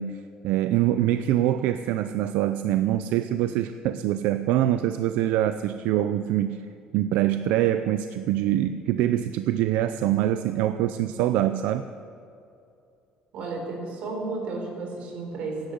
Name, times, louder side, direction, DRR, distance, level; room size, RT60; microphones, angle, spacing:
voice 1, 0.0-6.7 6.9-11.8, right 12 dB, 80° right, 10 dB, 0.5 m, -24 dB
voice 2, 13.3-15.7, right 3 dB, 55° right, 1 dB, 4.1 m, -33 dB
16.5 x 10.5 x 7.9 m, 2.6 s
cardioid pair, 175°, 3 cm